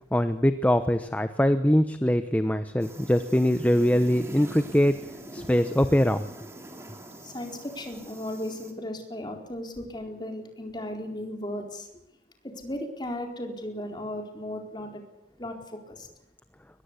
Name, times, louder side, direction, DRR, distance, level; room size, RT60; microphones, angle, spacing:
voice 1, 0.1-5.0 5.3-6.2, equal, 10° left, 10 dB, 0.9 m, -23 dB
sound 1, 2.8-8.7, right 1 dB, 15° right, 3.6 m, -44 dB
voice 2, 7.2-11.9 12.4-15.0 15.4-16.1, left 1 dB, 25° left, 3 dB, 4.4 m, -36 dB
23.0 x 20.5 x 8.4 m, 0.84 s
head